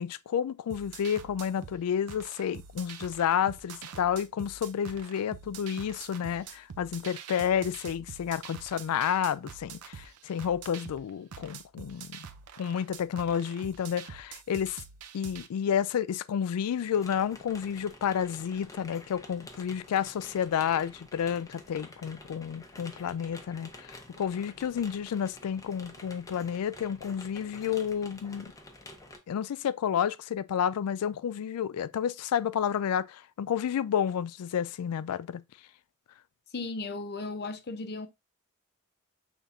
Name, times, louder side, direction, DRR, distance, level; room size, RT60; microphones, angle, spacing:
voice 1, 0.0-12.2 12.6-14.8 15.1-28.5 29.3-35.4, left 8 dB, 85° left, 0.3 m, -30 dB
sound 1, 0.7-15.5, right 7 dB, 85° right, 0.6 m, -46 dB
sound 2, 16.7-29.2, left 1 dB, 15° left, 0.7 m, -49 dB
voice 2, 36.5-38.1, left 3 dB, 50° left, 0.6 m, -36 dB
5.7 x 3.5 x 2.6 m
head